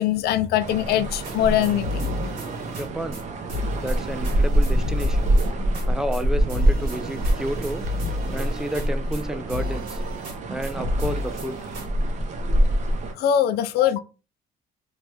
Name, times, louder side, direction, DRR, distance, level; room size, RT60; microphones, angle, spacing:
voice 1, 0.0-1.9 13.2-14.0, left 10 dB, 70° left, 0.4 m, -22 dB
sound 1, 0.6-13.1, right 1 dB, 45° right, 0.6 m, -25 dB
sound 2, 1.2-2.9 3.1-3.2 3.5-5.9 6.1-6.2 6.5-9.2 9.5-10.4 10.6-11.9, left 2 dB, 80° right, 1.5 m, -32 dB
voice 2, 2.7-3.2 3.8-5.4 5.9-7.9 8.3-10.0 10.5-11.7, right 1 dB, 5° right, 0.3 m, -31 dB
3.1 x 2.1 x 3.2 m
cardioid pair, 110°, 17 cm